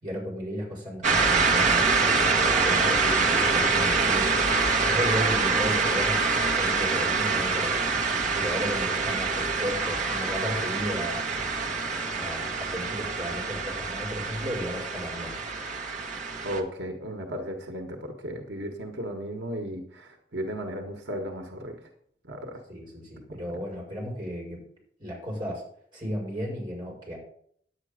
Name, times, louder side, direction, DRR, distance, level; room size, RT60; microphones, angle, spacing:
voice 1, 0.0-4.4 4.8-7.7 8.3-11.6 12.1-15.4 22.7-24.6 25.0-25.6 25.9-27.2, equal, 25° right, -2 dB, 4.9 m, -34 dB
sound 1, 1.0-16.6, right 4 dB, 45° right, 1.7 m, -25 dB
voice 2, 16.4-21.8 22.3-22.6 23.3-23.4, equal, 90° right, 3 dB, 1.5 m, -35 dB
9.8 x 8.7 x 5.1 m, 0.64 s
head